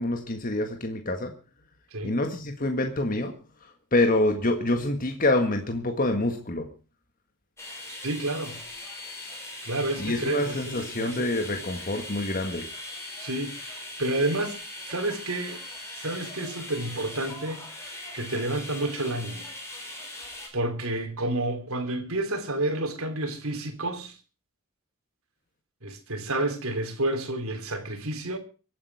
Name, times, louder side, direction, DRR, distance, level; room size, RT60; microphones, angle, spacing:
voice 1, 0.0-1.3 2.0-3.3 3.6-6.7 10.0-12.7, left 2 dB, 40° left, 1.6 m, -26 dB
sound 1, 7.6-20.5, left 1 dB, 15° left, 4.5 m, -40 dB
voice 2, 8.0-8.6 9.6-11.3 13.2-14.6 14.9-15.6 16.0-19.4 20.5-24.2 25.8-28.4, right 1 dB, 80° right, 3.3 m, -30 dB
24.5 x 8.8 x 4.7 m
head